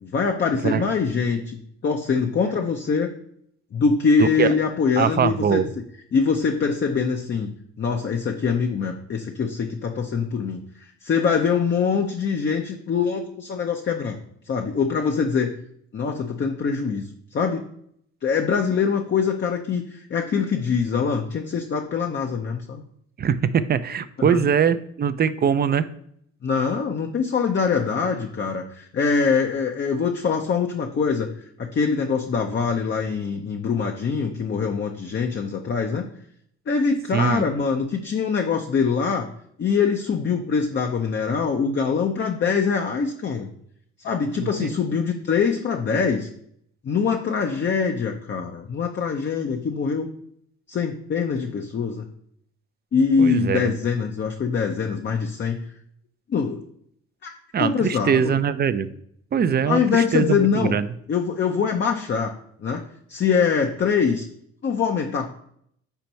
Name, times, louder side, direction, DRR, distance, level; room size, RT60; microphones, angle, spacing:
voice 1, 0.0-3.1 3.7-5.6 6.1-7.5 7.8-14.2 14.5-15.5 15.9-17.6 18.2-22.8 24.2-24.4 26.4-31.3 31.6-36.1 36.7-39.3 39.6-43.5 44.0-46.3 46.8-50.1 50.7-52.1 52.9-55.6 56.3-56.6 57.2-58.3 59.6-60.8 61.1-62.3 62.6-62.8 63.1-64.3 64.6-65.3, left 5 dB, 40° left, 3 dB, 0.6 m, -23 dB
voice 2, 4.2-4.5 5.0-5.7 23.2-25.9 37.1-37.4 44.4-44.7 53.2-53.7 57.5-58.9 59.3-60.9, right 7 dB, 35° right, 14 dB, 0.4 m, -22 dB
4.5 x 4.4 x 5.2 m, 0.69 s
cardioid pair, 90°, 30 cm